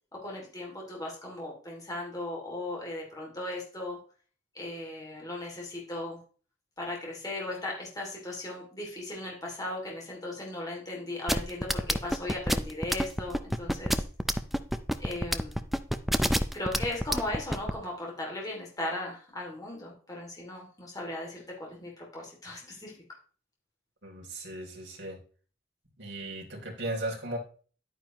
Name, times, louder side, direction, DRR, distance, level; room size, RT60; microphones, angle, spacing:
voice 1, 0.2-4.0 4.5-6.2 6.8-14.0 15.0-15.6 16.5-23.0, left 1 dB, 20° left, -2 dB, 2.7 m, -37 dB
sound 1, 11.3-17.7, equal, ahead, 0.5 m, -26 dB
voice 2, 24.0-25.2 26.0-27.4, right 1 dB, 70° right, -1 dB, 3.3 m, -36 dB
11.0 x 9.1 x 3.1 m, 0.41 s
head